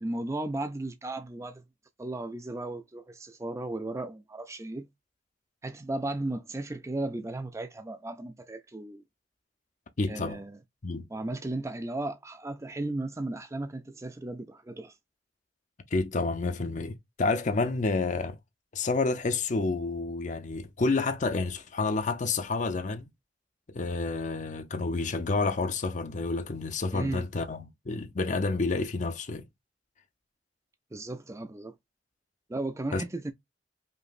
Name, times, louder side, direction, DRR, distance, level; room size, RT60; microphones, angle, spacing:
voice 1, 0.0-1.6 2.0-4.9 5.6-9.0 10.1-10.5 11.1-15.0 26.9-27.3 30.9-31.7 32.5-33.3, right 2 dB, 15° right, 0.4 m, -35 dB
voice 2, 10.0-10.4 10.8-11.1 15.9-18.4 18.7-23.1 23.7-29.4 32.9-33.0, left 3 dB, 45° left, 0.6 m, -29 dB
5.3 x 3.0 x 2.4 m
head